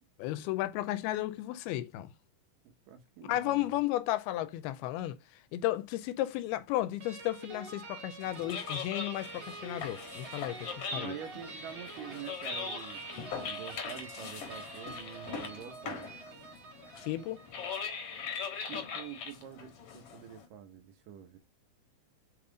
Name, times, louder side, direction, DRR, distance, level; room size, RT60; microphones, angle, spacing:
voice 1, 0.2-2.1 3.2-11.1 17.0-17.4, left 15 dB, 85° left, 2.4 m, -34 dB
voice 2, 2.6-3.8 10.9-13.0 13.4-16.1 18.7-21.4, right 9 dB, 75° right, 2.1 m, -46 dB
sound 1, 7.0-17.7, right 5 dB, 40° right, 2.2 m, -47 dB
sound 2, 8.2-20.4, left 5 dB, 60° left, 1.6 m, -41 dB
7.0 x 4.2 x 3.7 m
omnidirectional pair, 4.6 m